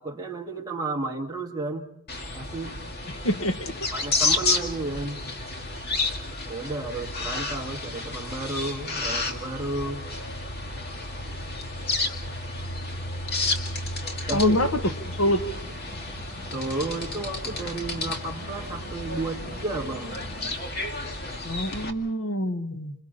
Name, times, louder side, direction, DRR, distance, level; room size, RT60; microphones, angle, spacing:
voice 1, 0.0-1.9 2.3-2.7 3.9-5.2 6.5-10.0 14.3-14.6 16.5-20.2, right 2 dB, 15° right, 0 dB, 2.2 m, -32 dB
sound 1, 2.1-21.9, left 2 dB, 45° left, 2.2 m, -31 dB
voice 2, 3.0-3.7 14.3-14.7 15.1-15.5 21.4-22.9, equal, 65° left, 7 dB, 1.6 m, -26 dB
sound 2, 15.0-20.5, left 1 dB, 10° left, 6.5 m, -47 dB
29.0 x 27.0 x 4.2 m, 0.69 s
head